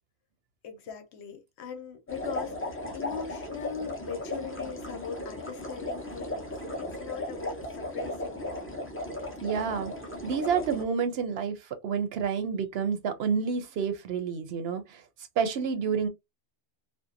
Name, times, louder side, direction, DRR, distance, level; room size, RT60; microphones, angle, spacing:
voice 1, 0.6-8.7, left 6 dB, 80° left, 0.9 m, -40 dB
sound 1, 2.1-10.8, left 1 dB, 15° left, 0.4 m, -36 dB
voice 2, 9.4-9.9 10.2-15.0 15.4-16.1, right 6 dB, 70° right, 0.8 m, -29 dB
2.6 x 2.0 x 2.5 m
omnidirectional pair, 1.1 m